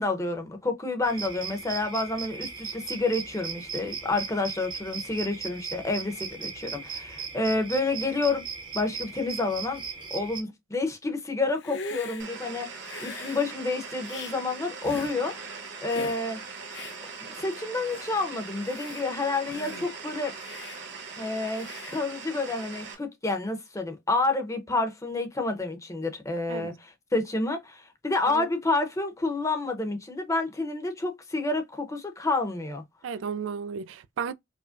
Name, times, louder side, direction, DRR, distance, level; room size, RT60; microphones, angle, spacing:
voice 1, 0.0-8.4 8.7-9.8 10.1-12.7 13.0-16.4 17.2-20.3 21.2-32.8, left 3 dB, 15° left, 0.7 m, -29 dB
sound 1, 1.0-10.4, right 5 dB, 25° right, 0.7 m, -38 dB
Hiss, 11.5-12.3 12.8-13.5 14.0-14.4 14.8-15.1 15.9-16.2 16.7-17.0 17.5-17.6 17.9-18.1 18.6-19.0 19.5-19.9 20.4-20.8 21.6-22.0, left 3 dB, 65° left, 0.8 m, -40 dB
sound 2, 12.2-22.9, right 5 dB, 65° right, 1.1 m, -41 dB
voice 2, 33.0-34.3, right 6 dB, 85° right, 0.3 m, -33 dB
4.9 x 2.1 x 2.5 m
head